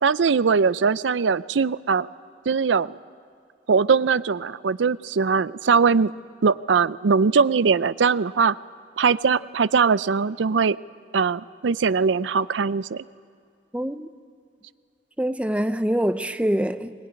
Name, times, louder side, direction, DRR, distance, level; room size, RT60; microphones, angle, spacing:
voice 1, 0.0-2.1 2.5-2.9 3.7-6.1 6.4-8.6 9.0-10.8 11.1-13.0, right 5 dB, 90° right, 0.5 m, -21 dB
voice 2, 13.7-14.1 15.2-16.9, equal, 5° right, 0.6 m, -24 dB
21.5 x 20.5 x 9.8 m
head